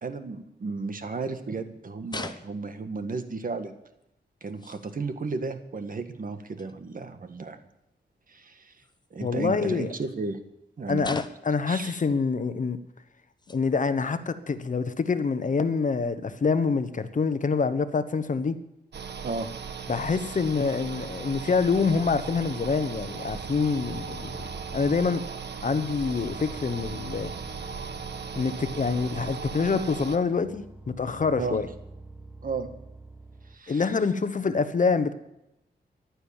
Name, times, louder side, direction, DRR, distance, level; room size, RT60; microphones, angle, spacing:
voice 1, 0.0-3.7 4.4-7.6 8.3-8.8 9.1-10.4 10.8-11.1 11.7-12.0 19.2-19.5 31.4-31.6 32.4-32.7 33.5-33.9, right 4 dB, 50° right, 8 dB, 1.7 m, -34 dB
sound 1, 2.1-2.9 4.0-4.1 4.4-5.0 6.6-6.7 8.8-9.4 10.0-10.1 11.0-11.6 12.6-12.7 13.2-13.8 14.2-14.3 15.4-15.5 16.7-16.8 18.1-18.5, left 3 dB, 25° left, 1.1 m, -41 dB
voice 2, 9.2-9.9 10.9-12.8 13.5-18.6 19.9-24.5 24.7-25.2 25.6-27.3 28.3-31.7 33.7-35.1, left 4 dB, 45° left, 12 dB, 1.2 m, -26 dB
sound 2, 18.9-30.2, right 6 dB, 75° right, 1.5 m, -37 dB
sound 3, 23.3-25.1 25.6-29.7 30.3-33.6, equal, 5° right, 2.0 m, -46 dB
15.0 x 11.5 x 7.3 m, 0.86 s
wide cardioid pair, 95°, 18 cm